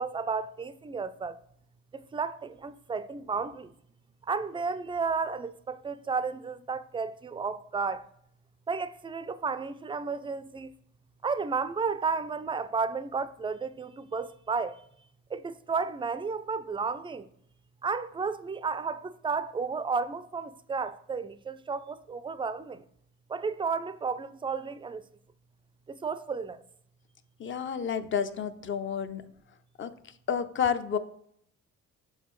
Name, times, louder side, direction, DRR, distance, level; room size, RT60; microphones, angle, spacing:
voice 1, 0.0-1.4 1.9-3.7 4.2-8.1 8.7-10.7 11.2-14.8 15.3-17.3 17.8-22.8 23.3-25.0 25.9-26.6, right 5 dB, 15° right, 0.3 m, -32 dB
voice 2, 27.4-29.2 29.8-29.9 30.3-31.0, left 7 dB, 40° left, 0.5 m, -30 dB
7.2 x 4.3 x 3.1 m
cardioid pair, 90°, 30 cm